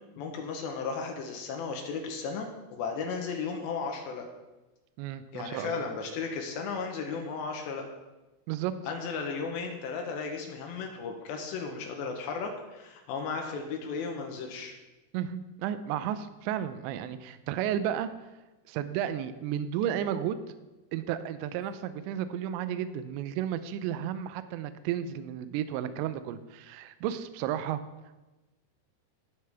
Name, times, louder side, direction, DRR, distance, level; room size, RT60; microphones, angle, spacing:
voice 1, 0.2-4.3 5.3-7.9 8.8-14.7, left 5 dB, 80° left, 3 dB, 2.9 m, -35 dB
voice 2, 5.0-5.8 8.5-8.8 15.1-18.1 18.7-20.4 20.9-27.8, right 10 dB, 85° right, 12 dB, 2.8 m, -33 dB
17.0 x 6.7 x 3.4 m, 1.1 s
omnidirectional pair, 5.5 m